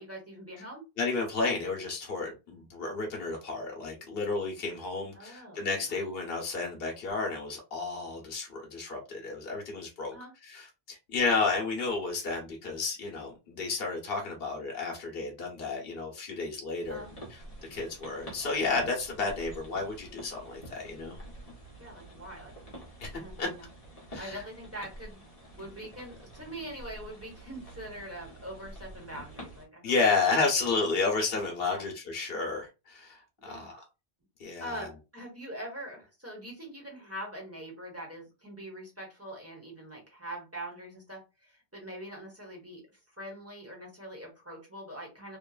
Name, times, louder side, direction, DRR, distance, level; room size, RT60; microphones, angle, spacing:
voice 1, 0.0-0.8 5.1-6.0 10.1-10.3 16.9-17.1 21.8-22.5 23.1-23.7 24.1-25.2 25.5-30.2 31.7-31.8 33.4-33.7 34.6-45.4, right 1 dB, 15° right, 1.1 m, -43 dB
voice 2, 1.0-10.2 10.4-17.0 17.3-17.4 17.7-21.2 23.0-23.1 23.4-23.5 24.1-24.4 29.8-33.8 34.4-34.9, left 4 dB, 70° left, 1.1 m, -31 dB
sound 1, 16.8-29.6, right 1 dB, 40° left, 1.1 m, -48 dB
3.0 x 2.2 x 2.3 m
omnidirectional pair, 1.0 m